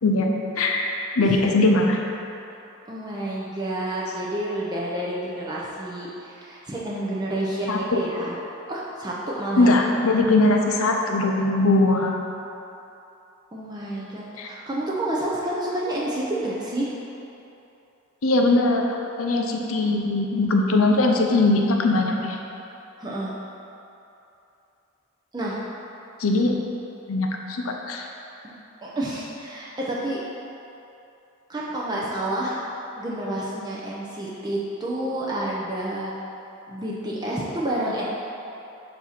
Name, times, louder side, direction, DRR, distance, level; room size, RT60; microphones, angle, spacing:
voice 1, 0.0-2.0 7.7-8.0 9.6-12.1 14.4-14.5 18.2-18.8 19.2-22.4 26.2-26.5 27.1-28.1, left 2 dB, 75° left, 1 dB, 0.6 m, -21 dB
voice 2, 1.2-1.6 2.9-8.3 8.7-9.7 13.5-16.9 23.0-23.3 25.3-25.6 28.4-28.5 28.8-30.2 31.5-32.6 33.0-36.1 36.7-38.0, right 1 dB, 20° right, -5 dB, 0.6 m, -29 dB
7.2 x 2.8 x 5.7 m, 2.9 s
head